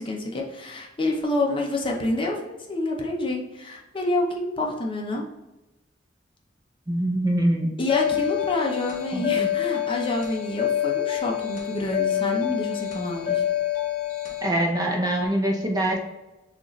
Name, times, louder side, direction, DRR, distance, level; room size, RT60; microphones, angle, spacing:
voice 1, 0.0-5.2 7.8-13.4, left 2 dB, 25° left, 0 dB, 0.7 m, -28 dB
voice 2, 6.9-7.8 9.1-9.5 14.4-16.0, right 1 dB, 20° right, 0 dB, 0.6 m, -24 dB
sound 1, 7.9-14.5, left 12 dB, 45° left, 1.2 m, -27 dB
6.5 x 2.5 x 3.1 m, 0.99 s
head